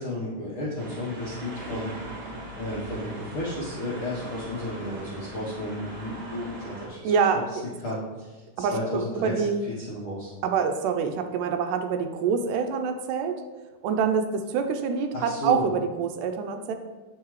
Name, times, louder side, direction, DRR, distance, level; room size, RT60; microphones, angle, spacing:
voice 1, 0.0-1.9 2.6-7.1 7.8-9.4 9.8-10.3 15.1-15.7, left 1 dB, 65° left, -7 dB, 1.3 m, -33 dB
sound 1, 0.8-6.9, right 1 dB, 40° right, 1.8 m, -40 dB
voice 2, 7.0-7.4 8.6-9.6 10.4-13.4 13.8-16.7, right 6 dB, 80° right, 6 dB, 2.1 m, -26 dB
7.2 x 5.6 x 3.1 m, 1.2 s
omnidirectional pair, 3.8 m